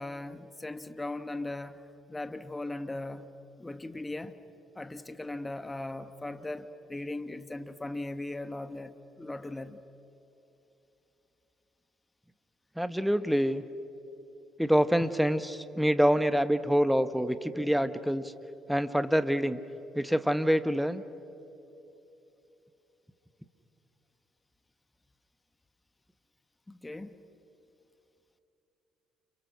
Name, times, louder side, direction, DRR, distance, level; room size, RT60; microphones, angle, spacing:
voice 1, 0.0-1.8 2.1-3.3 3.6-4.4 4.7-9.8 26.7-27.2, left 2 dB, 15° left, 1.5 m, -38 dB
voice 2, 12.8-13.6 14.6-18.3 18.7-19.6 19.9-21.0, equal, ahead, 1.4 m, -26 dB
30.0 x 27.5 x 6.2 m
hypercardioid pair, 50°, 0 cm